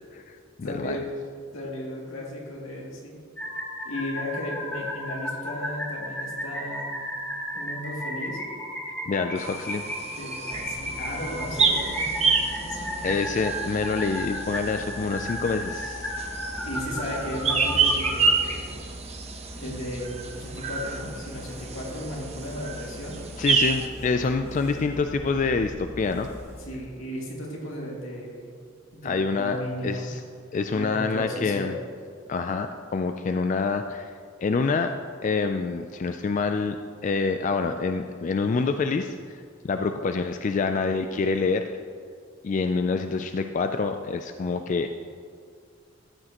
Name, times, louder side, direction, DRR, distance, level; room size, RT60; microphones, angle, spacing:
voice 1, 0.1-1.0 9.1-9.8 13.0-16.1 23.4-26.3 29.0-29.6 29.8-30.2 30.5-31.8 32.3-32.7 32.9-34.1 34.4-34.9 35.2-36.8 37.0-41.6 42.4-45.1, left 4 dB, 40° left, 7 dB, 0.3 m, -26 dB
voice 2, 0.6-1.0 1.5-3.2 3.8-6.9 7.5-8.4 10.1-13.1 16.6-18.8 19.6-23.2 26.6-28.5 28.9-30.1 30.7-31.8, left 1 dB, 85° left, -3 dB, 2.4 m, -35 dB
sound 1, 3.4-18.3, equal, 5° left, 1.5 m, -34 dB
sound 2, 9.4-23.9, right 5 dB, 30° right, 0.8 m, -29 dB
sound 3, 10.5-26.7, equal, 15° right, 1.9 m, -42 dB
13.5 x 8.8 x 3.0 m, 2.1 s
head